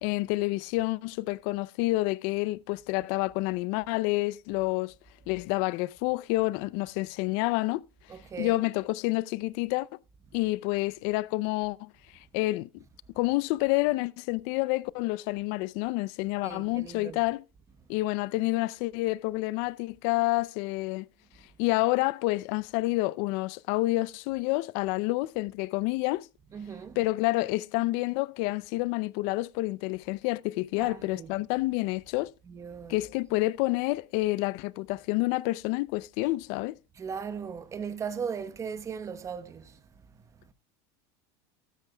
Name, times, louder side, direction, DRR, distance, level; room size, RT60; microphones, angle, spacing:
voice 1, 0.0-4.9 5.3-7.8 8.4-9.9 10.3-11.9 12.3-12.7 13.2-17.4 17.9-21.1 21.6-26.3 27.0-32.3 32.9-36.8, left 20 dB, 60° left, 0.5 m, -28 dB
voice 2, 8.1-8.6 16.4-17.2 26.5-27.0 30.8-31.3 32.5-33.0 36.9-39.8 40.1-40.2 40.5-40.6, right 6 dB, 25° right, 1.0 m, -38 dB
13.0 x 13.0 x 2.2 m
supercardioid pair, 135°, 13 cm